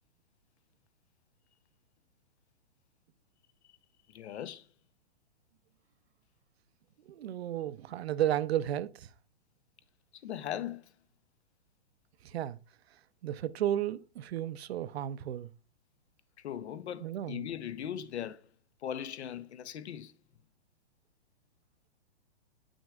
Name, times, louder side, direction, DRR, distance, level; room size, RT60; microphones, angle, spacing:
voice 1, 4.1-4.7 10.1-10.9 16.4-18.5 18.8-20.2, left 10 dB, 75° left, 0.7 m, -39 dB
voice 2, 7.0-9.1 12.2-12.6 13.2-15.5 17.0-17.5, right 11 dB, 65° right, 0.5 m, -33 dB
8.3 x 6.2 x 2.3 m
hypercardioid pair, 160°, 34 cm